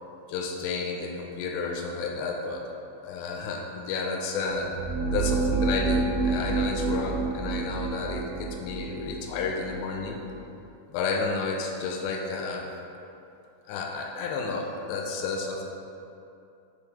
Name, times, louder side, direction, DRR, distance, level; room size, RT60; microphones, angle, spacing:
voice 1, 0.3-2.6 3.0-4.7 5.1-10.2 10.9-12.7 13.7-15.6, left 4 dB, 80° left, 1 dB, 2.5 m, -31 dB
sound 1, 4.5-10.4, right 4 dB, 80° right, 3.9 m, -29 dB
9.5 x 4.7 x 3.5 m, 2.6 s
omnidirectional pair, 5.7 m